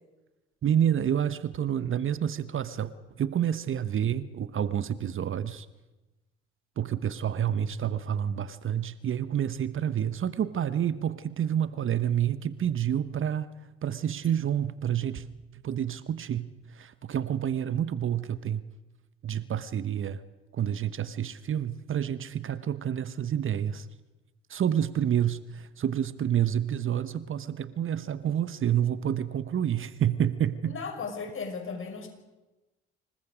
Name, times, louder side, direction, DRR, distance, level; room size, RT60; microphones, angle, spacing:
voice 1, 0.6-2.9 3.2-5.7 6.8-13.5 13.8-15.3 15.5-18.6 19.2-20.2 20.5-23.9 24.5-30.8, right 9 dB, 45° right, 15 dB, 1.1 m, -28 dB
voice 2, 30.7-32.1, left 5 dB, 45° left, 5 dB, 5.5 m, -36 dB
27.0 x 21.5 x 5.1 m, 1.1 s
hypercardioid pair, 50°, 29 cm